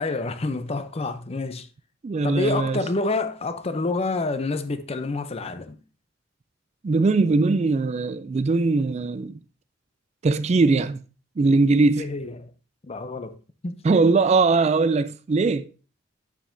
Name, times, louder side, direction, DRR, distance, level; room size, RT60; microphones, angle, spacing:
voice 1, 0.0-1.7 2.2-5.8 12.0-12.5 12.8-13.3 13.6-13.8, left 3 dB, 30° left, 0.6 m, -28 dB
voice 2, 2.0-2.8 6.8-9.4 10.2-11.0 11.4-12.1 13.8-15.7, right 3 dB, 35° right, 0.3 m, -20 dB
9.2 x 7.2 x 2.6 m
head